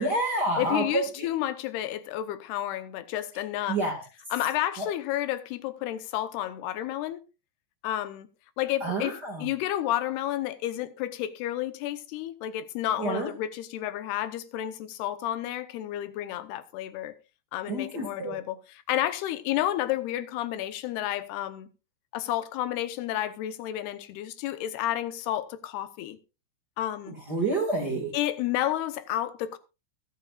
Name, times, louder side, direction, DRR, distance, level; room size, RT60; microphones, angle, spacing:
voice 1, 0.0-1.3 3.7-4.0 4.8-4.9 8.8-9.5 13.0-13.3 17.7-18.3 27.1-28.1, right 2 dB, 40° right, 1.7 m, -28 dB
voice 2, 0.6-3.8 4.3-7.2 7.8-8.3 8.6-17.1 17.5-18.6 18.9-21.7 22.1-26.2 26.8-27.2 28.1-29.6, left 13 dB, 85° left, 3.0 m, -31 dB
22.0 x 8.4 x 2.4 m
omnidirectional pair, 4.5 m